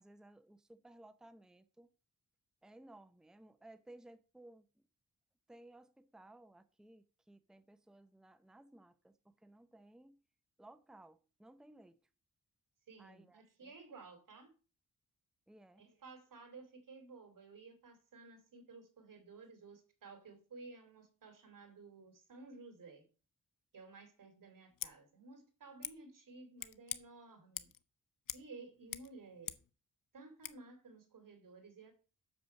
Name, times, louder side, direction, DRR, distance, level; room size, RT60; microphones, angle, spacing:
voice 1, 0.0-1.9 2.6-4.7 5.5-9.1 9.4-10.2 10.6-12.0 13.0-13.7 15.5-15.8, right 1 dB, ahead, 0.7 m, -59 dB
voice 2, 12.9-14.5 15.8-23.1 23.7-27.7 28.3-29.6 30.1-31.9, right 3 dB, 80° right, 2.8 m, -55 dB
Scissors, 24.7-24.9 25.8-25.9 26.6-27.0 27.6-27.8 28.3-28.5 28.7-29.7 30.4-30.6, left 11 dB, 80° left, 0.7 m, -44 dB
8.1 x 6.8 x 6.6 m
wide cardioid pair, 100°, 32 cm